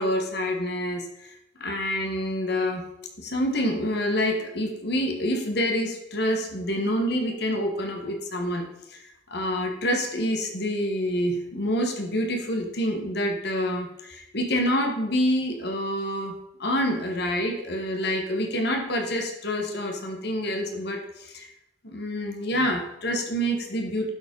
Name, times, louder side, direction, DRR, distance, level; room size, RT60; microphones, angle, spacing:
voice 1, 0.0-2.9 3.2-9.0 9.3-16.3 16.6-21.5 21.8-24.1, equal, 55° left, 3 dB, 1.3 m, -27 dB
11.5 x 5.0 x 5.2 m, 0.87 s
head